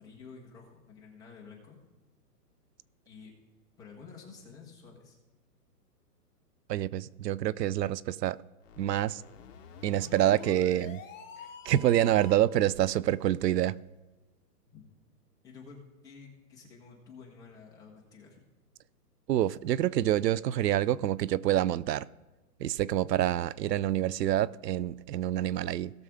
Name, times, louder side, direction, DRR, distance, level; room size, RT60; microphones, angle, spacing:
voice 1, 0.0-1.8 3.0-3.3 3.8-5.2 14.7-14.8 15.4-18.5, left 5 dB, 5° left, 1.1 m, -51 dB
voice 2, 6.7-8.4 8.8-9.2 9.8-11.0 11.6-13.8 19.3-22.0 22.6-25.9, right 12 dB, 85° right, 0.6 m, -27 dB
sound 1, 8.6-12.5, left 6 dB, 50° left, 1.7 m, -47 dB
17.5 x 6.7 x 3.6 m
hypercardioid pair, 165°, 48 cm